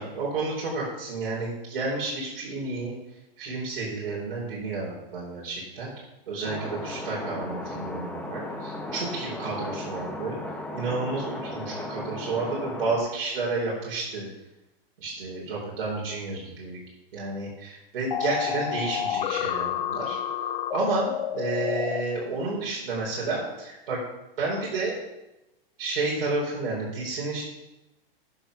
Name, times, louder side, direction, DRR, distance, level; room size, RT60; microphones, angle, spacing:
voice 1, 0.0-2.9 3.4-5.9 6.3-10.4 10.7-14.3 15.0-16.8 17.1-20.2 20.7-24.0 24.4-25.0 25.8-27.4, right 3 dB, 75° right, -5 dB, 4.8 m, -31 dB
sound 1, 6.4-13.0, left 1 dB, 5° left, 1.1 m, -36 dB
sound 2, 18.1-22.0, left 11 dB, 65° left, 0.9 m, -29 dB
9.7 x 7.7 x 6.6 m, 0.95 s
hypercardioid pair, 160°, 29 cm